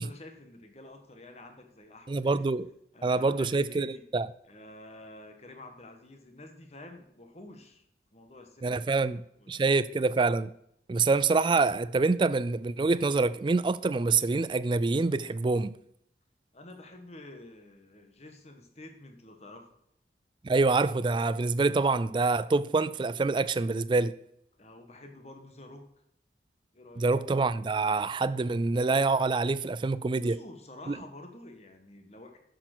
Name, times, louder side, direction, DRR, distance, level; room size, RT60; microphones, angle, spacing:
voice 1, 0.0-2.5 2.9-4.0 4.4-7.8 8.1-9.1 9.4-9.8 16.5-19.7 24.6-25.9 26.7-27.1 30.1-32.4, left 2 dB, 35° left, 1.4 m, -49 dB
voice 2, 2.1-2.7 3.0-4.3 8.6-9.2 9.5-10.5 10.9-15.7 20.4-24.1 27.0-30.4 30.9-31.0, right 3 dB, 25° right, 0.3 m, -26 dB
10.0 x 6.7 x 6.1 m
head